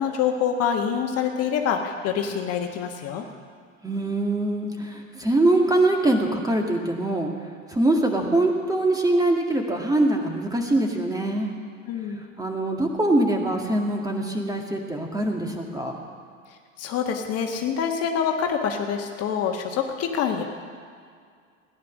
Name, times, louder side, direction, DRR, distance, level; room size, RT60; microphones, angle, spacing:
voice 1, 0.0-3.2 11.9-12.2 16.8-20.4, left 7 dB, 40° left, 3 dB, 1.5 m, -26 dB
voice 2, 3.8-7.3 7.7-11.5 12.4-16.0, right 2 dB, 10° right, 2 dB, 2.0 m, -23 dB
17.5 x 10.5 x 6.3 m, 2.2 s
figure-of-eight pair, 80°, 39 cm